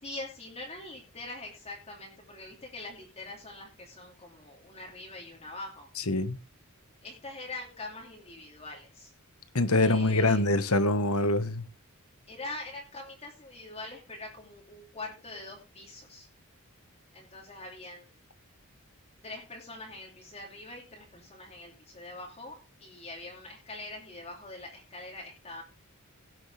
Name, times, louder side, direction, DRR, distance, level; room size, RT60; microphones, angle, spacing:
voice 1, 0.0-5.9 7.0-9.1 9.8-10.5 12.3-16.3 17.1-18.0 19.2-25.6, left 2 dB, 30° left, 2.8 m, -43 dB
voice 2, 6.1-6.4 9.5-11.6, left 2 dB, 75° left, 1.4 m, -24 dB
17.0 x 7.9 x 3.3 m
head